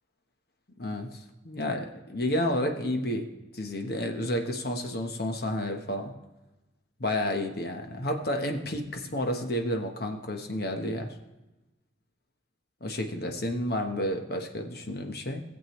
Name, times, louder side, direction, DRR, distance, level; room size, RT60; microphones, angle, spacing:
voice 1, 0.8-3.3 3.5-6.1 7.0-11.1 12.8-15.4, left 1 dB, 55° left, 4 dB, 1.1 m, -31 dB
17.5 x 7.6 x 3.1 m, 1.0 s
head